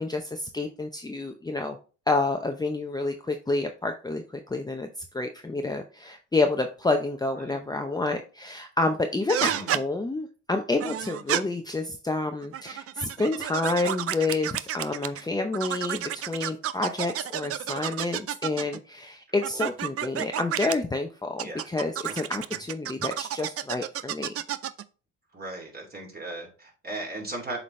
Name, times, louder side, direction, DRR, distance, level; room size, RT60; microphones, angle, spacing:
voice 1, 0.0-1.8 2.1-4.9 5.1-24.3, left 2 dB, 15° left, 4 dB, 0.6 m, -29 dB
sound 1, 9.3-9.8 10.8-11.4 12.4-15.2 15.5-18.8 19.4-20.8 21.4-24.8, right 11 dB, 50° right, 0.5 m, -31 dB
voice 2, 25.3-27.6, right 2 dB, 30° right, 0 dB, 2.8 m, -37 dB
7.5 x 4.0 x 3.2 m, 0.35 s
cardioid pair, 90°, 30 cm